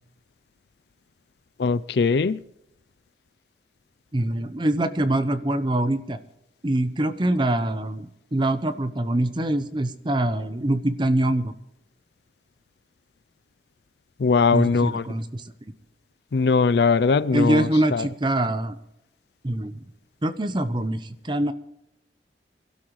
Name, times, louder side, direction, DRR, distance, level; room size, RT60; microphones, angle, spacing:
voice 1, 1.6-2.4 14.2-15.0 16.3-17.6 17.9-18.0, left 4 dB, 70° left, 0.4 m, -20 dB
voice 2, 4.1-6.2 6.6-11.5 14.5-15.5 17.3-18.8 19.4-19.8 20.2-21.5, right 1 dB, 25° right, 0.8 m, -24 dB
24.5 x 12.5 x 3.1 m
head